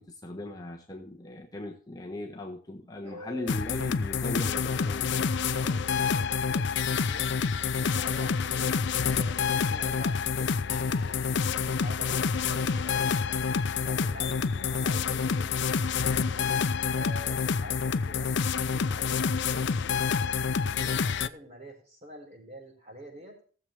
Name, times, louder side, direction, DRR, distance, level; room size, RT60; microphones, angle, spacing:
voice 1, 0.0-5.3, left 1 dB, 20° left, 0 dB, 1.2 m, -39 dB
voice 2, 3.0-3.5 5.4-7.3 7.8-8.7 9.0-10.5 10.8-11.2 11.5-13.6 13.8-15.5 16.2-16.5 16.9-18.3 18.6-20.1 20.6-23.4, equal, 30° right, 1 dB, 4.7 m, -47 dB
sound 1, 3.5-21.3, left 5 dB, 55° left, 0.5 m, -28 dB
17.5 x 7.4 x 3.3 m, 0.42 s
head